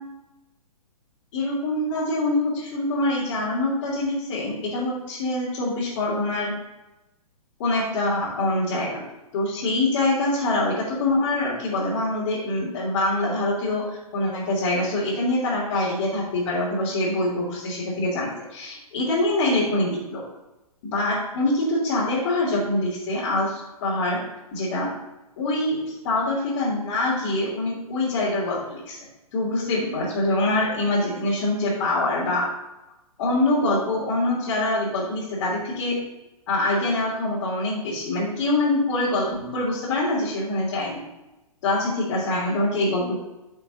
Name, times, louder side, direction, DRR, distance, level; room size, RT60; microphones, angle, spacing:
voice 1, 1.3-6.5 7.6-9.0 9.3-13.8 14.1-20.2 20.8-24.2 24.5-24.9 25.4-29.0 29.3-32.4 33.2-36.0 36.5-41.0 41.6-43.2, left 2 dB, 45° left, -9 dB, 3.3 m, -24 dB
13.0 x 6.5 x 2.7 m, 0.99 s
figure-of-eight pair, 125°, 20 cm